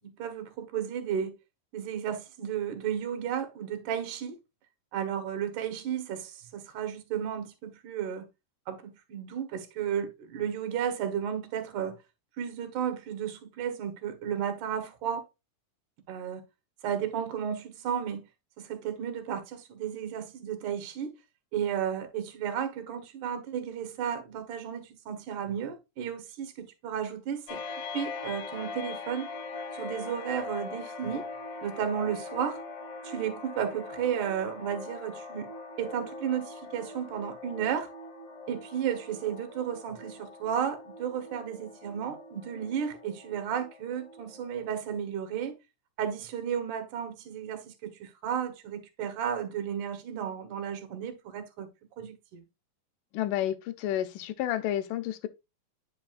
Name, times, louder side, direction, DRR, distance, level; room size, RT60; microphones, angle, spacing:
voice 1, 0.0-1.3 1.7-4.4 4.9-8.2 8.7-12.0 12.4-15.2 16.1-16.4 16.8-18.3 18.6-21.1 21.5-27.6 27.9-29.3 29.7-31.3 31.6-32.6 33.0-37.9 38.5-45.6 46.0-51.7 52.0-52.4, right 8 dB, 70° right, 2.6 m, -33 dB
sound 1, 27.5-44.7, left 3 dB, 60° left, 1.2 m, -42 dB
voice 2, 53.1-55.3, left 12 dB, 80° left, 2.1 m, -30 dB
9.3 x 5.6 x 2.4 m
omnidirectional pair, 3.9 m